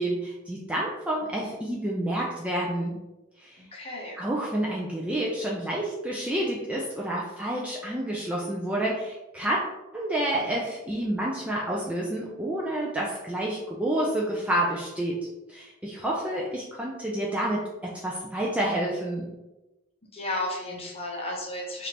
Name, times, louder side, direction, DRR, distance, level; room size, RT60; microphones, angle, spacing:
voice 1, 0.0-3.0 3.4-3.6 4.2-9.6 9.9-19.3, right 1 dB, 5° right, -4 dB, 0.3 m, -29 dB
voice 2, 3.7-4.2 20.1-21.9, left 1 dB, 30° left, -2 dB, 0.8 m, -33 dB
3.5 x 2.5 x 2.8 m, 1.0 s
head